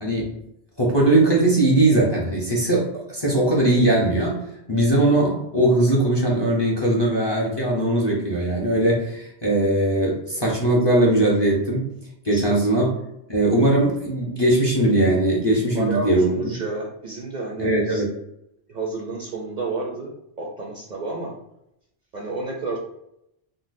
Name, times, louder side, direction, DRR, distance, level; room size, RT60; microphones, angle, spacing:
voice 1, 0.0-0.3 0.8-4.4 4.7-11.9 12.2-12.9 13.3-16.5 17.6-18.1, right 1 dB, 30° left, -4 dB, 0.5 m, -20 dB
voice 2, 15.7-18.0 18.7-20.1 20.4-21.3 22.1-22.8, right 3 dB, 55° right, -2 dB, 0.5 m, -30 dB
3.8 x 2.1 x 2.5 m, 0.80 s
omnidirectional pair, 1.1 m